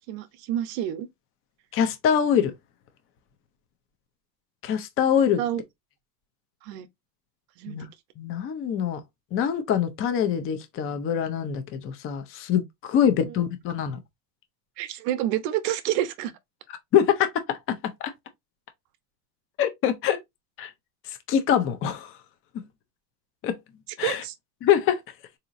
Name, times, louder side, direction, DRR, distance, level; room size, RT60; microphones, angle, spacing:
voice 1, 0.1-1.1 5.4-5.6 6.6-6.9 7.6-7.8 13.2-13.3 14.8-16.3 24.0-24.3, right 12 dB, 75° right, 0.8 m, -28 dB
voice 2, 1.7-2.5 4.6-5.4 7.7-7.9 8.2-9.0 9.3-14.0 16.9-18.1 19.6-20.2 20.6-20.7 21.1-22.2 23.4-23.6 24.0-24.2 24.6-25.0, left 8 dB, 30° left, 0.4 m, -24 dB
3.8 x 2.8 x 2.5 m
supercardioid pair, 130°, 50 cm